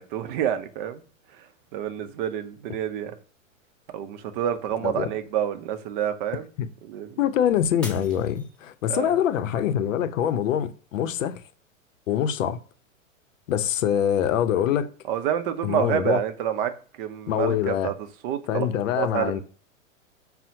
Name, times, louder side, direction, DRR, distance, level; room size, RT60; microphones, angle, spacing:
voice 1, 0.1-1.0 1.4-1.5 1.7-3.1 3.9-6.5 6.9-7.2 8.9-9.1 15.1-16.7 17.0-17.9 18.2-18.7 19.0-19.4, right 10 dB, 40° right, 0.5 m, -28 dB
voice 2, 7.2-11.4 12.1-12.6 13.5-14.9 15.6-16.2 17.3-17.9 18.5-19.4, left 9 dB, 70° left, 0.6 m, -24 dB
Shatter, 7.8-9.1 9.6-10.1 10.6-10.7, left 1 dB, ahead, 0.9 m, -42 dB
5.4 x 2.1 x 2.7 m
hypercardioid pair, 110°, 40 cm